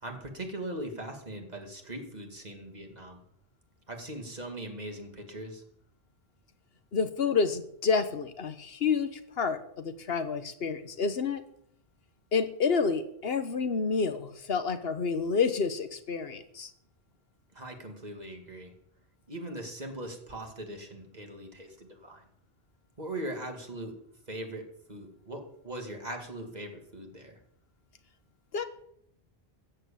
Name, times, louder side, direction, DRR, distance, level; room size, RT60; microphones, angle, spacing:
voice 1, 0.0-3.2 3.9-5.6 17.5-18.7 19.3-22.2 23.0-23.9 24.3-27.4, right 1 dB, 40° right, 3 dB, 2.4 m, -40 dB
voice 2, 6.9-11.4 12.3-16.7 28.5-28.6, left 5 dB, 70° left, 10 dB, 1.2 m, -29 dB
14.0 x 8.0 x 8.6 m, 0.73 s
omnidirectional pair, 1.0 m